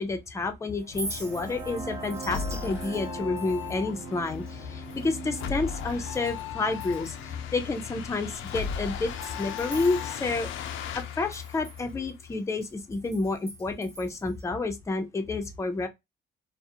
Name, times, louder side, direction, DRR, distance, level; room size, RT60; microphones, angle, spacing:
voice 1, 0.0-10.5 10.9-15.9, left 3 dB, 15° left, 0.4 m, -30 dB
Chink clink, 0.8-6.5 6.7-7.3 7.8-7.9 8.3-10.7 11.0-14.4, right 2 dB, 15° right, 0.8 m, -45 dB
sound 1, 0.8-8.7, right 5 dB, 80° right, 0.5 m, -42 dB
sound 2, 0.9-12.4, left 8 dB, 80° left, 0.4 m, -37 dB
2.4 x 2.0 x 2.6 m
cardioid pair, 90°, 20 cm